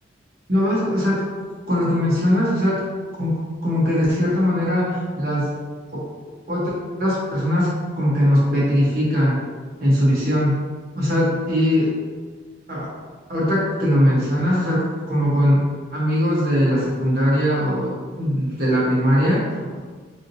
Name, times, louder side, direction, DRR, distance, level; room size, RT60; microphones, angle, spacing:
voice 1, 0.5-1.2 1.7-2.8 3.2-5.5 5.9-6.0 6.5-6.7 7.0-9.4 9.8-10.6 11.0-11.9 12.7-12.9 13.3-15.6 15.9-19.8, equal, 50° right, -6 dB, 1.1 m, -20 dB
3.5 x 2.7 x 2.7 m, 1.5 s
head